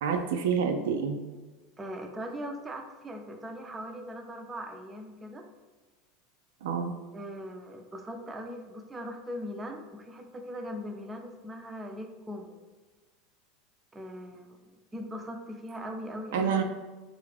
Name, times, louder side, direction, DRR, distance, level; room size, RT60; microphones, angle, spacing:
voice 1, 0.0-1.2 6.6-6.9 16.3-16.6, right 6 dB, 85° right, 5 dB, 0.4 m, -27 dB
voice 2, 1.8-5.5 7.1-12.6 13.9-16.6, equal, 15° right, 3 dB, 0.5 m, -40 dB
4.2 x 2.4 x 3.3 m, 1.3 s
supercardioid pair, 115°, 0 cm